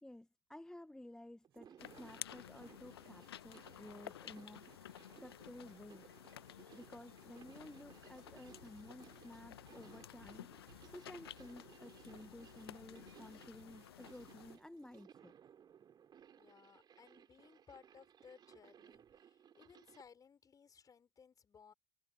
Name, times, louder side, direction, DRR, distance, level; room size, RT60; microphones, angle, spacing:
voice 1, 0.0-6.1 6.7-15.3, left 1 dB, 5° left, 1.5 m, -54 dB
sound 1, 1.4-20.1, right 8 dB, 30° right, 2.9 m, -62 dB
sound 2, 1.5-15.0, right 12 dB, 70° right, 7.6 m, -76 dB
sound 3, 1.8-14.6, left 11 dB, 70° left, 1.3 m, -54 dB
voice 2, 16.4-21.7, left 6 dB, 25° left, 5.6 m, -62 dB
figure-of-eight pair, 70°, 13 cm